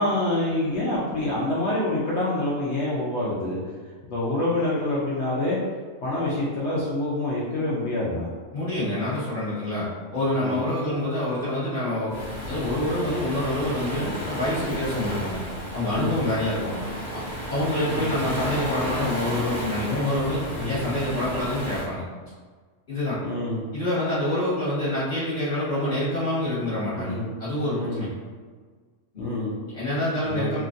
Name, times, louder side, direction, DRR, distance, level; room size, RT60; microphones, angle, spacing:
voice 1, 0.0-3.6 4.1-5.6 6.0-8.3 10.4-10.6 14.0-14.2 15.9-16.2 17.9-18.1 20.5-20.7 23.2-23.6 27.0-27.2 27.7-28.0 29.2-29.6 30.3-30.5, left 1 dB, 65° left, -6 dB, 0.8 m, -26 dB
voice 2, 8.5-15.4 15.7-16.8 17.1-17.2 17.5-22.0 22.9-23.2 23.7-27.1 27.4-28.1 29.7-30.6, left 1 dB, 35° left, -12 dB, 1.1 m, -27 dB
Waves surf, 12.1-21.9, equal, 85° left, 1.2 m, -32 dB
2.8 x 2.4 x 2.5 m, 1.5 s
omnidirectional pair, 1.3 m